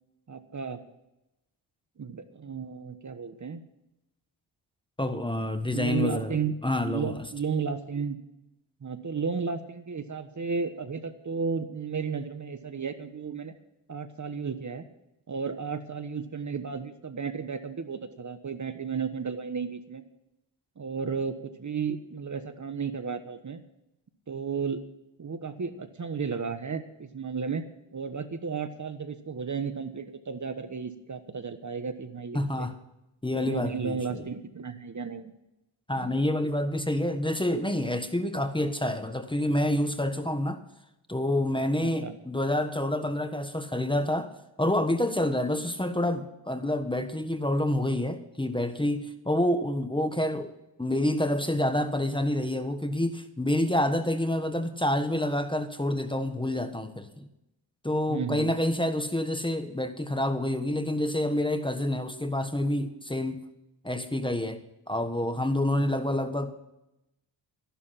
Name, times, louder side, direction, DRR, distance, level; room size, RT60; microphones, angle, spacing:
voice 1, 0.3-0.8 2.0-3.7 5.7-6.5 6.9-8.2 8.8-13.5 13.9-14.8 15.3-20.0 20.8-23.6 24.3-24.8 25.2-32.7 33.3-35.3 36.0-36.1 41.8-42.2 58.1-58.5, right 5 dB, 40° right, 10 dB, 1.3 m, -33 dB
voice 2, 5.0-6.4 6.6-7.2 32.3-32.7 33.2-34.2 35.9-40.6 41.1-44.3 44.6-50.5 50.8-57.3 57.8-63.4 63.8-64.6 64.9-66.6, left 1 dB, 10° left, 8 dB, 1.3 m, -28 dB
13.5 x 11.5 x 5.8 m, 0.89 s
cardioid pair, 80°, 47 cm